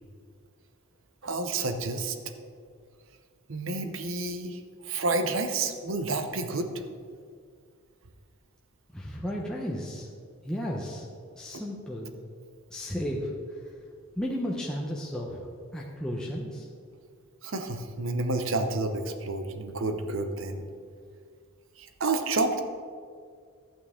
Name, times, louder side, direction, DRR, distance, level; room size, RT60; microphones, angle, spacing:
voice 1, 1.2-2.2 3.5-6.7 11.5-11.6 17.4-20.6 21.8-22.6, right 3 dB, 65° right, 7 dB, 0.8 m, -30 dB
voice 2, 8.9-10.1 10.4-11.1 11.3-12.1 12.7-13.6 14.2-16.7, equal, 5° left, -4 dB, 0.7 m, -34 dB
12.0 x 8.8 x 3.6 m, 2.2 s
head